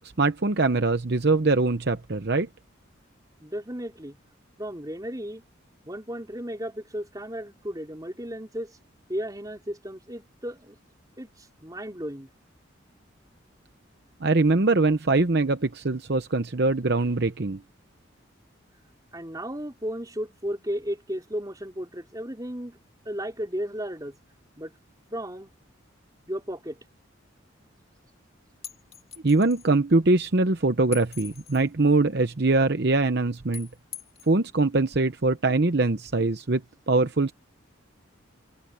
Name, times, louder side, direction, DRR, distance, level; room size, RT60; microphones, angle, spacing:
voice 1, 0.2-2.5 14.2-17.6 29.2-33.7 34.3-36.6 36.9-37.3, right 3 dB, 55° right, 0.8 m, -22 dB
voice 2, 3.4-4.2 4.6-5.4 5.8-8.8 9.1-10.8 11.2-12.3 19.1-22.8 23.0-24.2 24.6-24.7 25.1-25.5 26.3-26.8, equal, 20° right, 4.4 m, -34 dB
sound 1, 28.6-29.7 30.9-31.7 33.5-34.3, left 9 dB, 30° left, 2.4 m, -42 dB
head